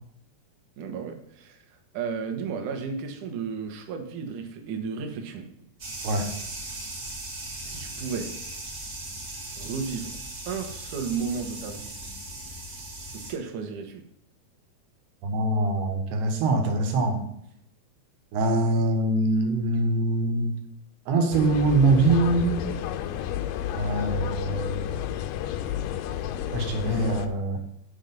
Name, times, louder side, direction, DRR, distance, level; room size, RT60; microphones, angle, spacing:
voice 1, 0.8-5.5 7.6-8.4 9.6-10.2 10.5-11.9 13.1-14.0, right 5 dB, 65° right, 4 dB, 2.3 m, -33 dB
sound 1, 5.8-13.3, right 2 dB, 45° right, 1.2 m, -38 dB
voice 2, 15.2-17.2 18.3-20.5 21.1-22.6 23.7-25.0 26.5-27.6, right 2 dB, 85° right, 4 dB, 3.3 m, -23 dB
sound 2, 21.3-27.3, left 11 dB, 85° left, 1.9 m, -31 dB
10.5 x 4.5 x 5.3 m, 0.74 s
omnidirectional pair, 4.5 m